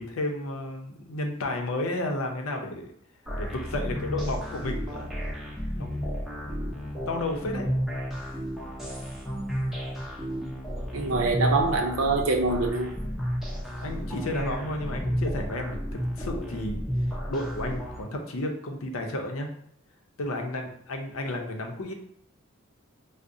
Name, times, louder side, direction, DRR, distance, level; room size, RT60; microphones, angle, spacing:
voice 1, 0.0-2.9 3.3-5.1 5.7-6.0 6.5-6.7 7.1-7.7 13.7-16.8 17.3-19.5 20.2-21.9, left 1 dB, 85° left, 3 dB, 0.6 m, -32 dB
sound 1, 3.3-18.0, equal, ahead, 0.6 m, -32 dB
voice 2, 10.9-12.9, right 3 dB, 85° right, 4 dB, 0.6 m, -24 dB
4.7 x 2.0 x 2.6 m, 0.74 s
head